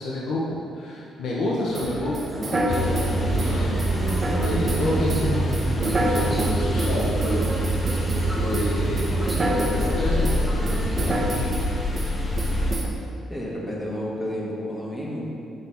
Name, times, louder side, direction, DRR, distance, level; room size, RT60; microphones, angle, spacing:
voice 1, 0.0-5.5 5.7-7.5 8.3-9.2 9.6-11.5, left 1 dB, 75° left, -5 dB, 1.0 m, -30 dB
sound 1, 1.7-11.3, right 1 dB, 5° right, 1.4 m, -32 dB
sound 2, 1.7-8.3 8.5-10.0 10.2-11.7 12.0-12.1 12.4-12.9, right 1 dB, 35° right, 1.1 m, -29 dB
sound 3, 2.7-12.7, right 1 dB, 35° left, 0.9 m, -25 dB
voice 2, 13.3-15.2, left 1 dB, 20° left, -4 dB, 1.5 m, -31 dB
6.4 x 3.5 x 5.8 m, 2.5 s
cardioid pair, 90°, 0 cm